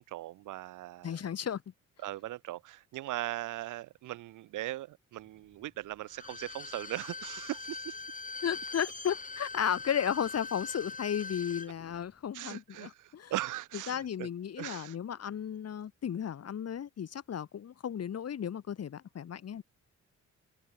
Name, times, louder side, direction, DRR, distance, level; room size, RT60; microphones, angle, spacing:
voice 1, 0.0-1.3 2.0-8.0 12.3-14.3 14.6-15.0, right 15 dB, 90° right, 3.6 m, -39 dB
voice 2, 1.0-1.6 8.4-13.3 13.9-19.6, left 8 dB, 55° left, 3.5 m, -34 dB
Bowed string instrument, 6.1-11.7 12.0-12.1, left 4 dB, 25° left, 5.9 m, -42 dB
cardioid pair, 90°, 30 cm